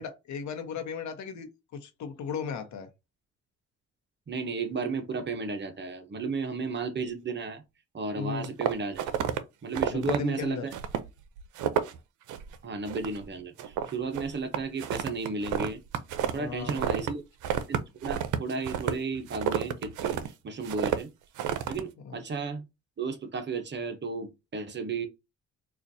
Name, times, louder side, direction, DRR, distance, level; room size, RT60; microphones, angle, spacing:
voice 1, 0.0-2.9 8.1-8.5 9.9-10.7 16.3-16.9 22.0-22.2, left 6 dB, 70° left, 0.9 m, -36 dB
voice 2, 4.3-7.6 7.9-9.0 9.6-10.6 12.6-15.8 16.3-17.2 17.7-21.1 21.7-22.6 23.0-25.1, right 4 dB, 35° right, 0.8 m, -33 dB
sound 1, 8.4-9.4 9.7-10.2 10.7-11.1 11.4-12.0 12.3-12.6 12.9-13.3 13.6-17.1 17.4-20.3 20.6-21.0 21.4-21.8, right 9 dB, 80° right, 0.6 m, -30 dB
4.1 x 2.4 x 2.7 m
cardioid pair, 90°, 30 cm